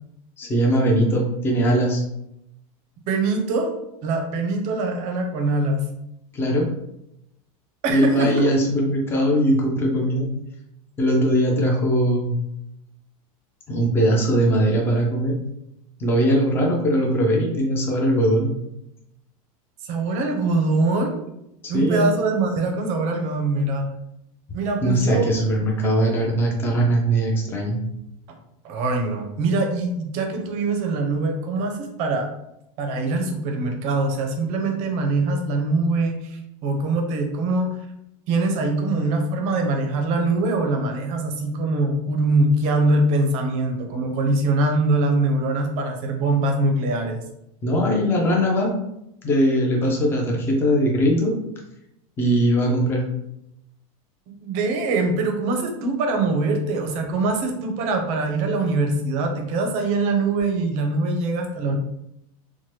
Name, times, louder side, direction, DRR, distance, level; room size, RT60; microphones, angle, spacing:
voice 1, 0.4-2.0 6.3-6.7 7.9-10.3 11.0-12.3 13.7-15.4 16.0-18.5 21.6-22.1 24.8-27.8 47.6-48.7 49.2-51.3 52.2-53.0, equal, 10° left, -1 dB, 0.5 m, -20 dB
voice 2, 3.1-3.7 4.0-5.8 7.8-8.5 19.8-21.2 21.7-23.9 24.5-25.3 28.6-32.3 32.8-37.7 38.3-47.2 54.4-61.8, right 2 dB, 35° right, 3 dB, 0.5 m, -23 dB
2.8 x 2.1 x 3.2 m, 0.82 s
supercardioid pair, 160°, 19 cm